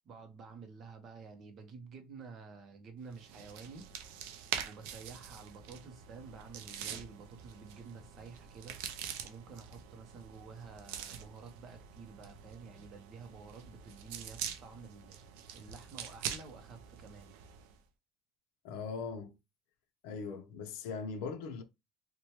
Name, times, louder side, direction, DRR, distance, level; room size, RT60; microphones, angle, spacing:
voice 1, 0.0-3.9 4.6-8.8 9.2-15.1 15.5-17.3, right 5 dB, 30° right, 0.6 m, -50 dB
sound 1, 3.1-17.8, right 8 dB, 75° right, 0.4 m, -45 dB
voice 2, 18.6-19.3 20.0-21.6, left 5 dB, 70° left, 0.5 m, -40 dB
3.0 x 2.1 x 2.8 m
cardioid pair, 175°, 0 cm